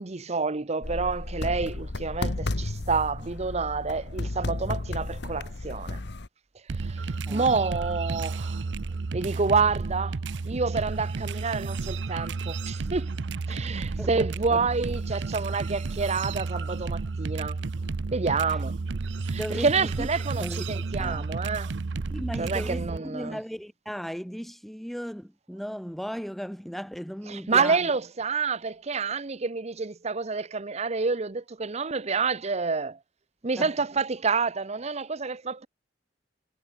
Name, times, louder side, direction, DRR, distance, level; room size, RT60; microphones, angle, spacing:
voice 1, 0.0-6.0 6.7-8.6 9.1-10.2 10.4-13.1 13.5-17.6 18.1-18.8 19.2-21.7 22.4-23.4 27.3-33.0 33.4-35.7, right 4 dB, 35° right, 0.8 m, -28 dB
sound 1, 0.8-6.3, left 2 dB, 65° left, 1.2 m, -33 dB
sound 2, 6.7-23.0, right 3 dB, 70° right, 0.6 m, -32 dB
voice 2, 14.0-14.6 18.5-18.6 19.4-20.1 20.4-21.3 22.1-27.9 33.6-33.7, equal, ahead, 0.8 m, -36 dB
head